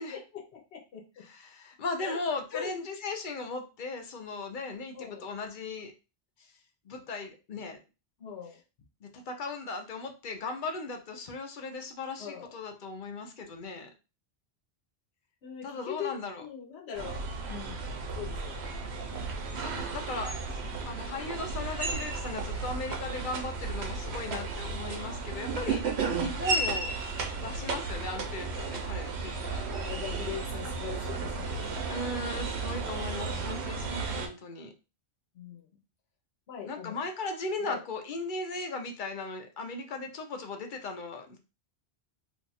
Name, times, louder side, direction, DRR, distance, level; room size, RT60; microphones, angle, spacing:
voice 1, 0.1-1.3 2.0-2.2 2.5-2.7 4.9-5.3 8.2-8.6 12.2-12.5 15.4-17.2 17.5-18.6 24.2-24.5 29.7-32.0 32.4-32.5 33.3-33.5 33.8-33.9 35.3-35.7 36.5-37.0 37.6-37.8, left 8 dB, 80° left, 1 dB, 1.0 m, -41 dB
voice 2, 1.2-5.9 6.4-6.5 6.8-7.8 9.0-13.9 15.6-16.4 19.6-20.6 20.9-26.9 27.4-29.6 31.9-34.7 36.6-41.4, left 3 dB, 55° left, 4 dB, 0.8 m, -37 dB
sound 1, 16.9-34.3, right 4 dB, 80° right, 1.0 m, -34 dB
2.7 x 2.3 x 4.0 m, 0.31 s
omnidirectional pair, 1.1 m